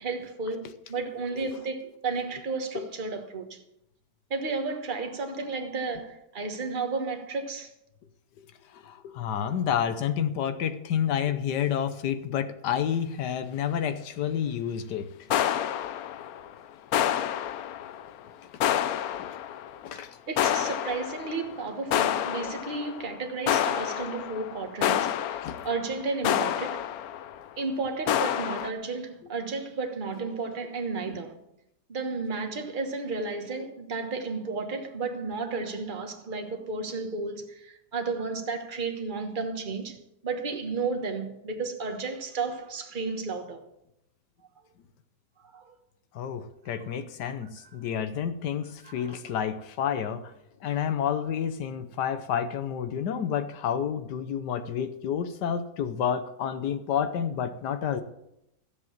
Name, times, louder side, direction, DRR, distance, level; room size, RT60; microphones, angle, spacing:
voice 1, 0.0-3.6 4.3-7.7 20.3-25.2 25.6-26.9 27.6-31.3 31.9-40.0 40.2-43.6 45.5-45.7 46.8-46.9 48.8-49.2, right 4 dB, 30° right, 1.4 m, -33 dB
voice 2, 8.7-15.1 19.2-19.3 19.8-20.1 25.4-25.6 46.1-50.3 50.6-58.0, left 8 dB, 85° left, 1.4 m, -29 dB
sound 1, 15.3-16.5 16.9-18.2 18.6-19.8 20.4-21.5 21.9-23.1 23.5-27.4 28.1-28.7, left 10 dB, 70° left, 1.0 m, -28 dB
14.0 x 7.8 x 7.2 m
omnidirectional pair, 1.8 m